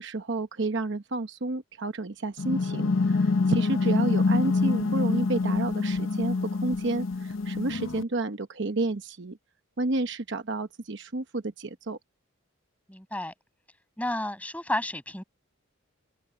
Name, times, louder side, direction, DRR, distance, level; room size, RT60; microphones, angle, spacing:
voice 1, 0.0-9.4 9.8-12.0, right 2 dB, 60° right, 1.0 m, -30 dB
sound 1, 2.4-8.0, left 3 dB, 65° left, 0.7 m, -26 dB
voice 2, 12.9-13.3 14.0-15.2, left 1 dB, 5° left, 5.8 m, -31 dB
head